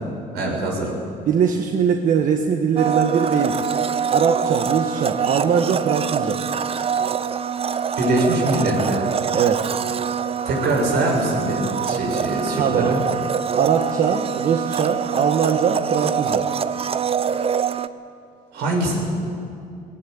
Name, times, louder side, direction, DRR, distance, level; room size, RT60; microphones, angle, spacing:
voice 1, 0.3-1.0 8.0-9.1 10.4-13.0 18.5-19.0, right 1 dB, 80° right, 1 dB, 6.3 m, -23 dB
voice 2, 1.3-3.7 4.1-6.4 9.3-9.6 12.6-13.0 13.6-16.5, right 7 dB, 55° right, 3 dB, 1.4 m, -21 dB
Domestic sounds home sounds, 2.8-17.9, right 7 dB, 35° right, 0.7 m, -25 dB
18.5 x 18.0 x 9.3 m, 2.5 s
cardioid pair, 110°, 17 cm